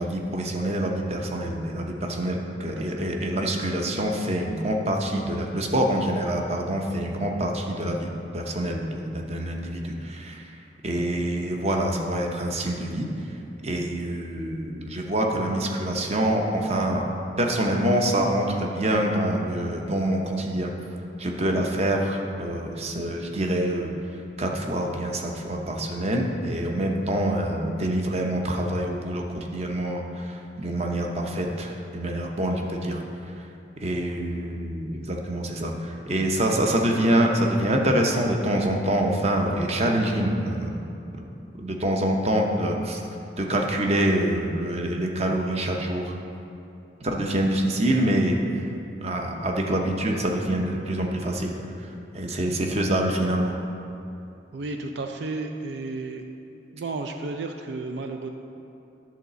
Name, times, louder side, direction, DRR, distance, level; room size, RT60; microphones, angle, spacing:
voice 1, 0.0-10.6 10.8-17.0 17.4-20.7 21.2-33.0 33.3-33.5 33.8-40.8 41.2-41.3 41.6-43.0 43.4-46.1 47.0-48.6 49.0-51.5 51.8-53.5, right 1 dB, 35° right, 1 dB, 0.8 m, -26 dB
voice 2, 54.5-56.2 56.7-58.3, right 3 dB, 70° right, 5 dB, 0.4 m, -32 dB
10.5 x 4.0 x 6.8 m, 2.8 s
head